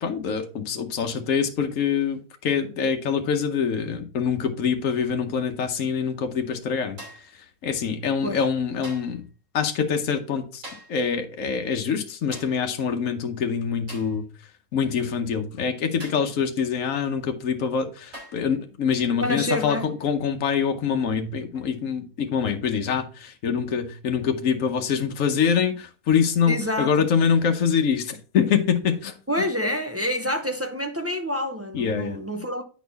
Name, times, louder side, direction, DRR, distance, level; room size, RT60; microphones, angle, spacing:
voice 1, 0.0-7.0 7.6-9.2 9.5-10.6 10.9-14.3 14.7-29.2 31.7-32.2, left 6 dB, 75° left, 1.2 m, -25 dB
sound 1, 7.0-7.4 8.8-9.2 10.6-11.0 12.3-12.6 13.9-14.2 16.0-16.3 17.4-17.5 18.1-18.5 19.7-19.9 21.5-21.7, right 1 dB, 65° right, 3.8 m, -43 dB
voice 2, 19.2-19.9 26.5-26.9 29.3-32.6, left 1 dB, 15° right, 0.5 m, -27 dB
9.4 x 4.2 x 4.0 m
omnidirectional pair, 1.4 m